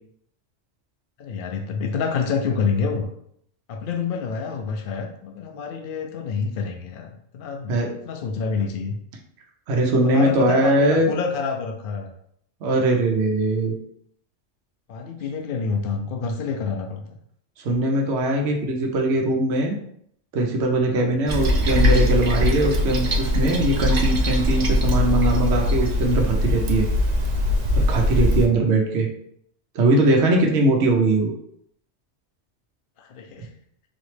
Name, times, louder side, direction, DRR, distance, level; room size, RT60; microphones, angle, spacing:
voice 1, 1.2-3.1 3.7-9.0 10.0-12.1 14.9-17.2 28.4-28.6 33.0-33.5, left 5 dB, 60° left, 2 dB, 0.6 m, -28 dB
voice 2, 9.7-11.1 12.6-13.8 17.6-19.8 20.3-26.8 27.7-29.1 29.7-31.3, right 2 dB, 70° right, 1 dB, 1.0 m, -21 dB
Toilet flush, 21.3-28.5, left 1 dB, 50° right, 0.5 m, -21 dB
4.1 x 3.0 x 3.2 m, 0.69 s
omnidirectional pair, 1.3 m